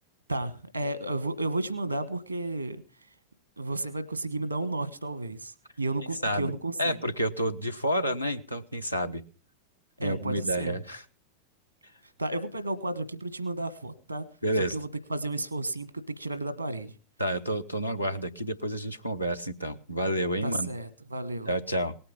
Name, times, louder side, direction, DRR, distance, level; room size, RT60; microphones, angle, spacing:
voice 1, 0.3-2.8 3.6-7.1 10.0-10.8 12.2-14.3 14.7-16.9 20.4-21.5, right 2 dB, 85° right, 14 dB, 1.3 m, -32 dB
voice 2, 6.8-9.2 10.0-11.0 14.4-14.8 17.2-20.7 21.4-22.0, equal, 90° left, 5 dB, 0.9 m, -29 dB
18.5 x 8.7 x 5.3 m, 0.37 s
figure-of-eight pair, 90°, 0 cm